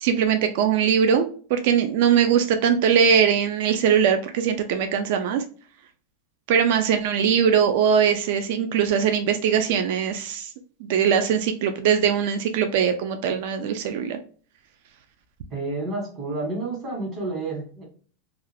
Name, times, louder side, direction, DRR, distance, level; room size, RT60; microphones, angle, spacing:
voice 1, 0.0-5.4 6.5-10.5 10.8-14.2, right 7 dB, 60° right, 6 dB, 0.3 m, -21 dB
voice 2, 15.5-17.8, right 2 dB, 25° right, -1 dB, 1.2 m, -30 dB
2.4 x 2.3 x 3.3 m, 0.42 s
supercardioid pair, 160°, 0 cm